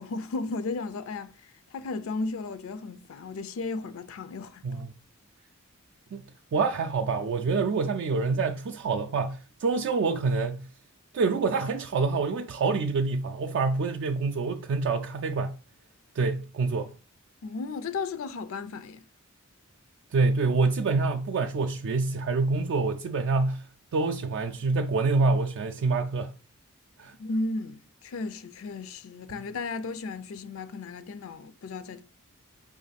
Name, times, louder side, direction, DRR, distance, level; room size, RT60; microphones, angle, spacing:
voice 1, 0.0-4.6 17.4-19.0 27.2-32.0, left 3 dB, 70° left, 0.4 m, -34 dB
voice 2, 6.5-10.7 11.1-15.5 16.2-16.9 20.1-23.7 23.9-26.3 27.0-27.1, right 4 dB, 60° right, 0.3 m, -26 dB
5.1 x 2.6 x 4.0 m
head